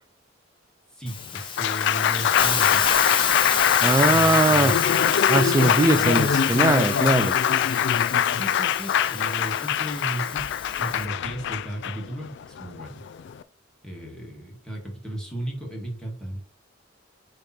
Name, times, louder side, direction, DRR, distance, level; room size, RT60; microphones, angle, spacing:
voice 1, 0.9-2.9 4.1-4.7 5.9-6.4 8.4-10.5 10.8-13.0 13.8-16.4, right 1 dB, 5° left, 2.1 m, -35 dB
Hiss, 1.1-11.1, left 6 dB, 25° left, 1.0 m, -30 dB
Applause, 1.2-13.4, left 9 dB, 65° left, 0.4 m, -23 dB
voice 2, 3.8-4.8 5.3-7.4, right 2 dB, 20° right, 0.3 m, -21 dB
8.6 x 3.2 x 4.5 m
head